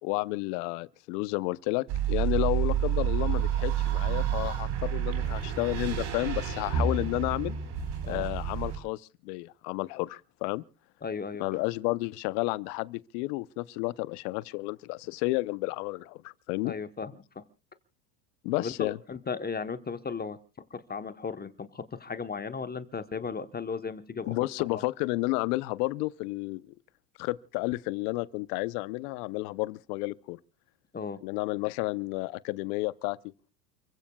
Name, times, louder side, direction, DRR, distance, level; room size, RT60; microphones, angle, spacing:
voice 1, 0.0-7.6 8.1-10.6 11.4-16.7 18.4-19.0 24.2-26.7 27.2-30.4 31.2-33.2, left 21 dB, 65° left, 0.8 m, -31 dB
sound 1, 1.9-8.8, right 9 dB, 65° right, 4.5 m, -29 dB
voice 2, 11.0-11.4 16.6-17.4 18.6-20.4 20.7-24.3 24.7-24.8 30.9-31.2, left 5 dB, 20° left, 1.0 m, -36 dB
29.5 x 15.5 x 2.3 m
hypercardioid pair, 95°, 50 cm